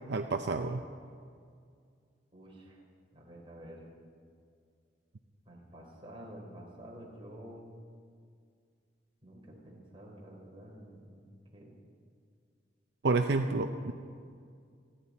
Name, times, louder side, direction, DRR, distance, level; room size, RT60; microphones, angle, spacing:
voice 1, 0.1-0.8 13.0-13.9, right 3 dB, 65° right, 6 dB, 0.6 m, -29 dB
voice 2, 2.3-2.8 3.1-3.8 5.5-7.7 9.2-11.7, right 1 dB, 30° right, -2 dB, 3.6 m, -50 dB
28.5 x 10.5 x 4.1 m, 2.2 s
head